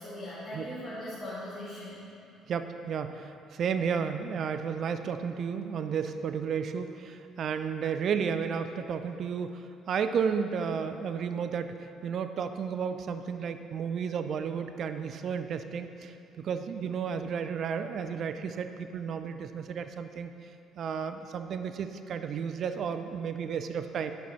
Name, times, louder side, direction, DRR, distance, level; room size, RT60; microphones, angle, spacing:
voice 1, 0.0-2.1, left 1 dB, 20° left, -11 dB, 1.7 m, -39 dB
voice 2, 2.5-20.3 20.8-24.1, right 6 dB, 55° right, 9 dB, 0.3 m, -32 dB
9.6 x 5.6 x 3.1 m, 2.6 s
supercardioid pair, 85°, 0 cm